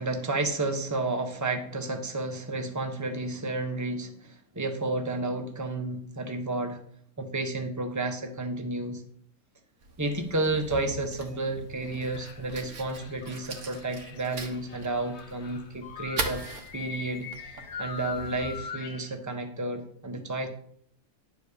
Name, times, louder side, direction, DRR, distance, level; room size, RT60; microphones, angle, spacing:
voice 1, 0.0-6.8 7.2-9.0 10.0-16.4 16.7-20.5, right 2 dB, 15° right, 4 dB, 1.1 m, -31 dB
Fire, 9.8-18.6, right 3 dB, 75° right, 1.8 m, -40 dB
sound 1, 11.8-19.1, left 6 dB, 50° left, 1.3 m, -42 dB
10.5 x 5.2 x 6.9 m, 0.62 s
omnidirectional pair, 1.5 m